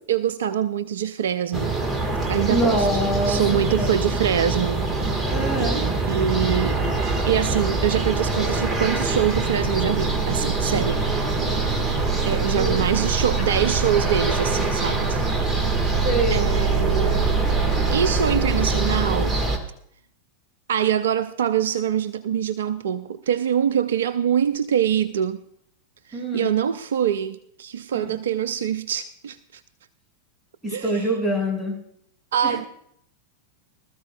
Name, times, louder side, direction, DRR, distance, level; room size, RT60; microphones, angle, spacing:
voice 1, 0.1-1.8 2.3-2.9 3.3-4.9 5.6-5.7 6.1-6.8 7.3-11.0 12.3-15.2 16.3-17.3 17.9-19.4 20.7-25.4 26.1-29.6 30.7-31.1 32.3-32.6, right 9 dB, 60° right, 0.4 m, -24 dB
sound 1, 1.5-19.6, right 3 dB, 20° right, 1.7 m, -23 dB
voice 2, 2.5-3.9 5.3-5.8 12.4-12.8 16.0-16.5 26.1-26.6 27.9-28.2 30.6-31.8 32.4-32.6, right 1 dB, ahead, 6.4 m, -25 dB
19.0 x 13.5 x 2.4 m
figure-of-eight pair, 90°, 0 cm